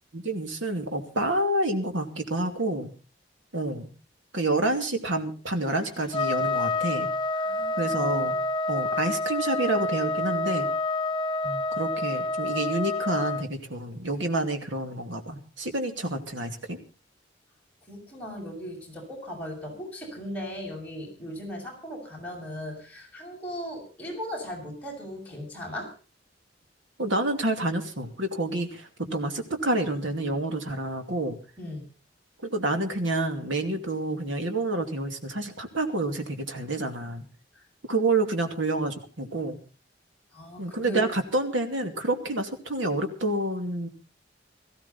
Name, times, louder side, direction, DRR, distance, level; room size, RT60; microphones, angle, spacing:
voice 1, 0.1-2.9 3.5-3.9 4.3-7.1 7.8-8.4 8.7-10.7 11.4-16.8 27.0-31.4 32.4-37.2 37.9-39.6 40.6-43.9, right 2 dB, 90° right, 6 dB, 2.7 m, -28 dB
Trumpet, 6.1-13.4, left 2 dB, 25° left, 0.9 m, -28 dB
voice 2, 7.4-8.3 17.9-25.9 29.0-29.2 31.6-31.9 37.6-37.7 40.3-41.0, equal, 10° left, -2 dB, 7.4 m, -38 dB
18.5 x 15.5 x 4.2 m, 0.35 s
head